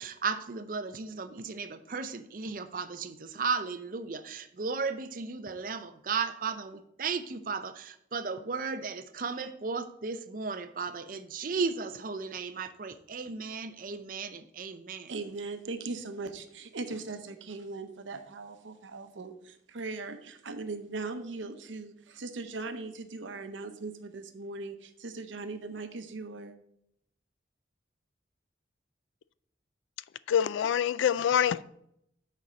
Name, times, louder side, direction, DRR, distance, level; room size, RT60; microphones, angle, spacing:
voice 1, 0.0-15.1, right 5 dB, 45° right, 10 dB, 0.5 m, -35 dB
voice 2, 15.1-26.6, right 3 dB, 90° right, 8 dB, 0.7 m, -39 dB
voice 3, 30.3-31.6, left 9 dB, 85° left, 18 dB, 0.3 m, -25 dB
6.6 x 4.2 x 6.2 m, 0.75 s
head